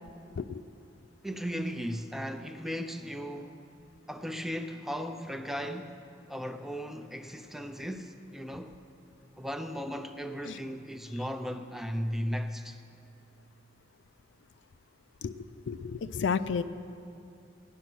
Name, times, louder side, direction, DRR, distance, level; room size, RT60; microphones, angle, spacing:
voice 1, 1.2-3.6 4.1-8.8 9.4-12.8, equal, ahead, 0.5 m, -36 dB
voice 2, 15.7-16.6, left 6 dB, 70° left, 0.4 m, -31 dB
16.5 x 10.5 x 6.1 m
head